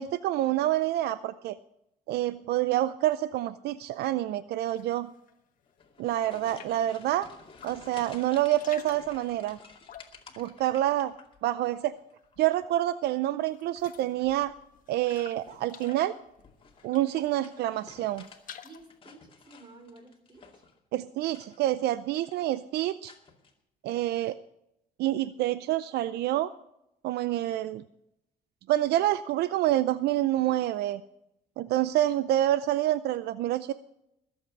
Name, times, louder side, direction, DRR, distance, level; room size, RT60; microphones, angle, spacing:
voice 1, 0.0-1.6 2.1-5.1 6.0-7.3 7.6-9.6 10.4-11.1 11.4-11.9 12.4-14.5 14.9-16.1 16.8-18.2 20.9-23.1 23.8-24.3 25.0-26.5 27.0-27.8 28.7-31.0 31.6-33.7, right 14 dB, 75° right, 15 dB, 0.5 m, -27 dB
sound 1, 4.7-5.4 5.7-6.9 7.4-8.0 8.3-11.7 12.0-12.7 13.0-13.1 13.5-17.5 17.9-19.0, left 9 dB, 55° left, 1.3 m, -51 dB
sound 2, 5.7-11.7 12.0-12.6 14.0-14.4 15.4-18.4 18.8-20.8 21.2-21.9 22.1-22.6 23.1-23.5, left 5 dB, 30° left, 2.4 m, -53 dB
voice 2, 18.6-20.7, right 2 dB, 30° right, 6 dB, 3.9 m, -52 dB
20.0 x 7.9 x 5.3 m, 0.82 s
cardioid pair, 110°, 17 cm